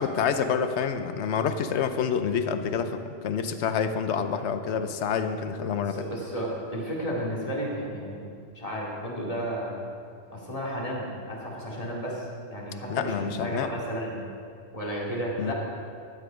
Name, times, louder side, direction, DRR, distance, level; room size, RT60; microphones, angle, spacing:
voice 1, 0.0-6.0 12.9-13.7 15.4-15.5, left 6 dB, 70° left, 9 dB, 1.0 m, -27 dB
voice 2, 5.9-8.3 8.5-9.7 10.3-14.2 14.7-15.5, equal, 30° left, -4 dB, 2.4 m, -33 dB
11.5 x 10.0 x 5.1 m, 2.4 s
omnidirectional pair, 1.2 m